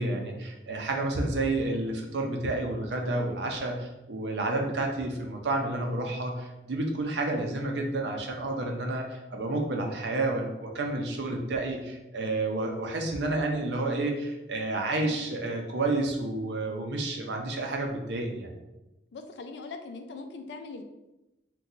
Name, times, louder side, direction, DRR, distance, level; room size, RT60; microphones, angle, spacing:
voice 1, 0.0-18.5, right 2 dB, 85° right, 2 dB, 0.6 m, -30 dB
voice 2, 19.1-20.8, left 3 dB, 80° left, 6 dB, 0.4 m, -41 dB
3.8 x 2.3 x 2.7 m, 0.98 s
head